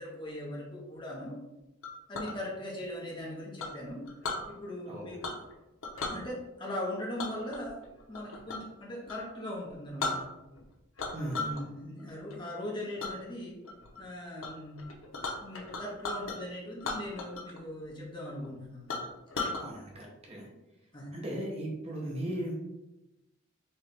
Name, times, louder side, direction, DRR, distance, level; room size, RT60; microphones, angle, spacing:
voice 1, 0.0-1.3 2.1-4.0 4.5-5.4 6.0-10.3 11.2-13.6 14.0-14.9 15.4-18.9 20.9-21.1, left 1 dB, 25° left, -4 dB, 1.1 m, -40 dB
Chink clink, 1.8-2.4 3.6-4.4 5.2-5.5 5.8-6.2 7.2-8.7 9.0-9.2 9.7-9.8 10.0-10.6 11.0-11.6 12.0-12.4 13.0-13.1 13.6-14.0 14.4-14.5 14.8-16.4 16.8-17.6 17.8-17.9 18.4-18.5 18.9-19.6, left 3 dB, 85° left, 0.8 m, -36 dB
voice 2, 11.1-11.5 19.6-20.5 21.1-22.6, right 1 dB, 30° right, -2 dB, 0.9 m, -37 dB
4.2 x 3.2 x 3.3 m, 0.96 s
head